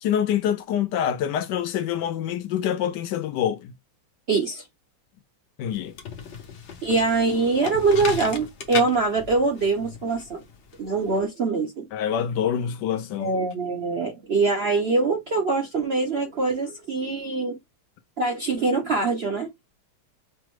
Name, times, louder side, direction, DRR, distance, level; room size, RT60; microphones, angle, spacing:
voice 1, 0.0-3.7 5.6-5.9 11.9-13.3, left 9 dB, 75° left, 1.2 m, -26 dB
voice 2, 4.3-4.6 6.8-10.4 10.8-11.9 13.2-17.6 18.2-19.5, right 3 dB, 55° right, 0.7 m, -23 dB
sound 1, 5.7-11.2, left 6 dB, 55° left, 0.8 m, -36 dB
6.0 x 2.1 x 3.1 m
omnidirectional pair, 2.0 m